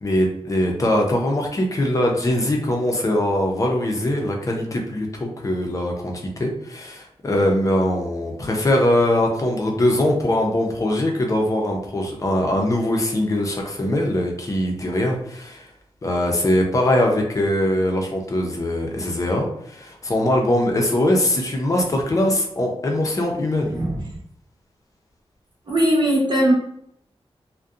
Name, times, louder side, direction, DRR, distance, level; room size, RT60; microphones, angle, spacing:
voice 1, 0.0-15.7 16.0-23.7, left 1 dB, 35° left, 1 dB, 0.5 m, -22 dB
voice 2, 23.7-24.2 25.7-26.5, right 1 dB, 50° right, -2 dB, 0.8 m, -20 dB
2.6 x 2.1 x 2.4 m, 0.71 s
wide cardioid pair, 140°, 10 cm